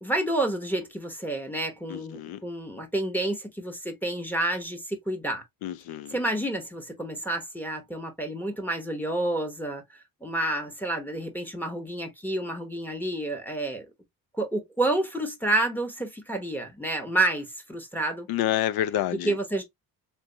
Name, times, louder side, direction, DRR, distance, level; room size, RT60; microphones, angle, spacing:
voice 1, 0.0-5.4 6.1-9.8 10.2-13.9 14.4-18.3 19.2-19.6, right 1 dB, 5° left, 0.9 m, -29 dB
voice 2, 1.9-2.4 5.6-6.2 18.3-19.4, left 12 dB, 70° left, 0.5 m, -28 dB
3.3 x 3.0 x 2.6 m
cardioid pair, 115°, 38 cm